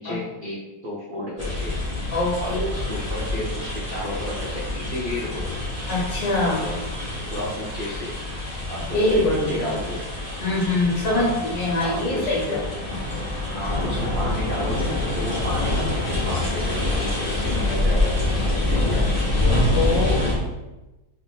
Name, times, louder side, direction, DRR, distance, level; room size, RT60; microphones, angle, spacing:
voice 1, 0.0-1.7 2.4-5.5 6.4-6.8 7.3-8.2 8.7-10.0 11.1-11.3 11.8-12.6 13.4-19.3, left 1 dB, 85° right, -5 dB, 0.4 m, -32 dB
sound 1, 1.4-20.3, left 2 dB, 25° left, 1.1 m, -26 dB
voice 2, 2.1-2.7 5.9-6.6 8.9-9.6 10.4-12.6 19.7-20.2, left 2 dB, 70° left, -6 dB, 1.9 m, -23 dB
3.6 x 2.9 x 3.8 m, 1.1 s
omnidirectional pair, 2.0 m